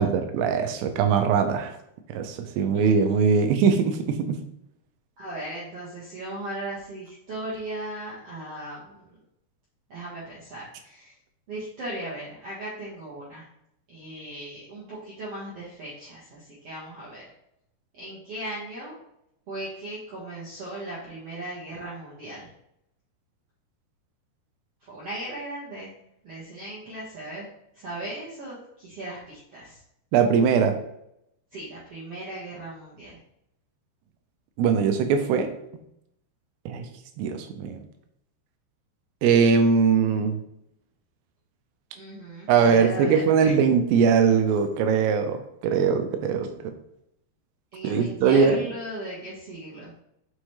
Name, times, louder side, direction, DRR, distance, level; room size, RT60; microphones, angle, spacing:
voice 1, 0.0-1.7 2.1-4.4 30.1-30.8 34.6-35.5 36.7-36.9 37.2-37.8 39.2-40.4 42.5-46.7 47.8-48.6, right 6 dB, 85° right, 7 dB, 2.7 m, -21 dB
voice 2, 5.2-9.0 9.9-11.1 11.5-13.4 13.9-17.3 17.9-19.0 19.5-22.5 24.8-25.9 26.2-27.5 27.7-29.8 31.5-33.2 41.9-43.5 47.7-49.9, right 1 dB, 55° right, -8 dB, 1.7 m, -37 dB
6.2 x 5.8 x 3.2 m, 0.77 s
omnidirectional pair, 5.0 m